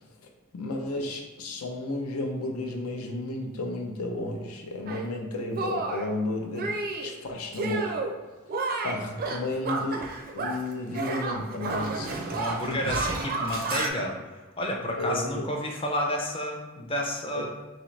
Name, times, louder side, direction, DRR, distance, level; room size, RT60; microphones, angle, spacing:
voice 1, 0.5-7.9 8.8-10.1 10.3-12.2 12.8-13.0 15.0-15.5 17.3-17.5, left 2 dB, 85° left, 1 dB, 0.7 m, -32 dB
Shatter, 4.9-5.1 5.6-6.1 6.6-7.1 7.5-8.1 8.5-10.7 10.9-13.9, right 3 dB, 45° right, 0.4 m, -31 dB
voice 2, 12.3-14.2 14.6-17.5, left 1 dB, 25° left, 1 dB, 0.6 m, -30 dB
3.8 x 3.0 x 3.2 m, 1.3 s
head